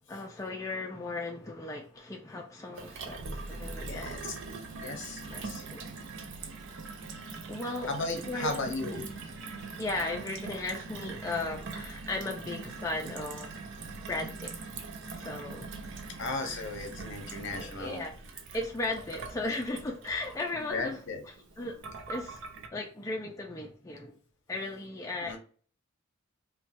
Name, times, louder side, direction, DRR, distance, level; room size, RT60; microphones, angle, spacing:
voice 1, 0.1-4.2 5.3-5.9 7.5-7.9 8.3-8.5 8.8-9.2 9.8-13.5 14.1-14.5 15.2-15.7 16.5-16.6 17.6-18.1 18.5-21.0 21.2-21.8 22.1-22.4 22.7-24.1 24.5-25.4, left 2 dB, 15° left, 0 dB, 0.3 m, -36 dB
Gurgling / Water tap faucet / Sink (filling or washing), 2.8-22.7, right 4 dB, 55° right, 0.5 m, -42 dB
voice 2, 3.8-4.3 4.8-5.6 7.9-9.0 16.2-18.0 20.7-21.2 25.2-25.4, left 3 dB, 55° left, 4 dB, 0.7 m, -35 dB
3.0 x 2.2 x 2.8 m, 0.43 s
head